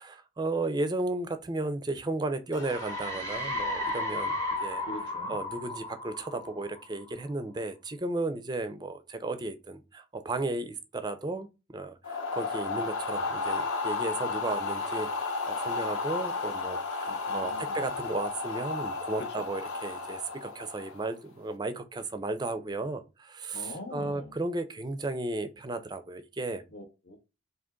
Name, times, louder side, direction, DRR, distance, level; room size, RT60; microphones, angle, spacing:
voice 1, 0.0-4.3 4.6-4.8 5.3-11.5 11.7-26.6, right 2 dB, 20° right, 0.4 m, -34 dB
Ghost Scream, 2.5-7.1, left 1 dB, 15° left, 1.0 m, -34 dB
voice 2, 4.8-5.4 17.0-17.8 19.2-19.3 23.5-24.3 26.7-27.2, left 1 dB, 55° left, 0.9 m, -43 dB
short wind, 12.0-21.1, left 4 dB, 85° left, 1.0 m, -33 dB
3.8 x 2.8 x 3.6 m
head